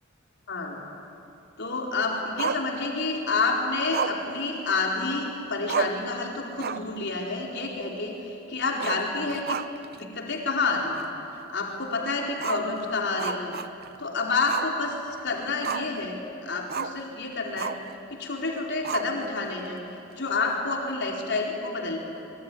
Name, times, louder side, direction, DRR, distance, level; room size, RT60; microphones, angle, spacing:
voice 1, 0.5-0.8 1.6-9.6 9.9-11.0 11.5-13.5 14.0-14.9 15.2-17.7 18.1-19.8 20.1-22.0, left 3 dB, 60° left, 0 dB, 4.3 m, -29 dB
Growling, 2.4-3.2 3.9-5.2 5.4-5.5 5.7-6.1 6.5-7.0 7.3-7.4 8.7-10.0 10.3-10.4 11.0-11.1 12.4-14.0 14.5-14.7 15.1-16.0 16.7-17.0 17.6-17.9 18.8-19.5, right 6 dB, 50° right, 0.6 m, -32 dB
24.5 x 22.5 x 10.0 m, 2.7 s
head